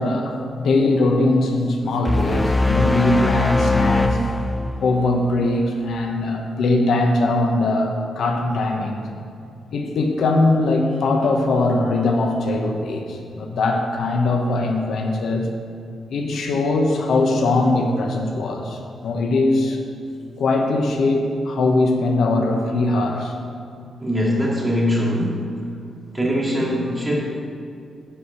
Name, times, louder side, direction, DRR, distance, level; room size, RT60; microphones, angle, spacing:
voice 1, 0.0-4.2 4.8-9.0 9.7-15.5 16.1-19.8 20.4-23.3, left 2 dB, 70° left, 2 dB, 1.1 m, -21 dB
sound 1, 2.1-5.4, left 2 dB, 10° left, 0.4 m, -21 dB
voice 2, 24.0-25.4 26.1-27.2, equal, 5° right, -5 dB, 2.4 m, -21 dB
11.5 x 5.0 x 8.2 m, 2.4 s
cardioid pair, 125°, 0 cm